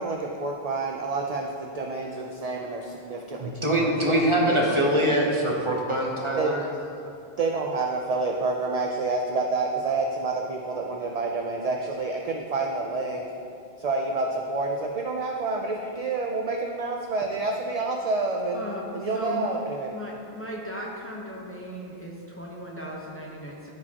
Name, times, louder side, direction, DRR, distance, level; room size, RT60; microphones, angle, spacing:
voice 1, 0.0-4.6 6.4-6.5 7.0-13.3 13.8-18.6 18.9-19.9, right 3 dB, 50° right, 1 dB, 0.5 m, -28 dB
voice 2, 3.4-6.6, right 1 dB, 30° right, -2 dB, 0.9 m, -23 dB
voice 3, 4.4-5.3 18.5-19.5 19.9-23.7, equal, 15° left, -3 dB, 0.8 m, -37 dB
14.0 x 4.7 x 2.9 m, 2.5 s
omnidirectional pair, 1.1 m